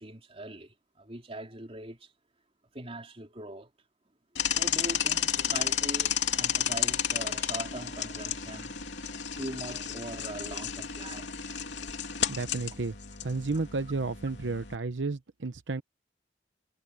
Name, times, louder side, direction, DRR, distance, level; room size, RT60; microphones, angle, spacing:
voice 1, 0.0-2.1 2.7-3.7 4.6-8.8 9.4-11.4, right 1 dB, 30° right, 3.6 m, -41 dB
sound 1, 4.4-14.8, left 9 dB, 75° left, 3.2 m, -32 dB
voice 2, 12.3-12.9 13.2-15.8, right 3 dB, 80° right, 0.8 m, -32 dB
head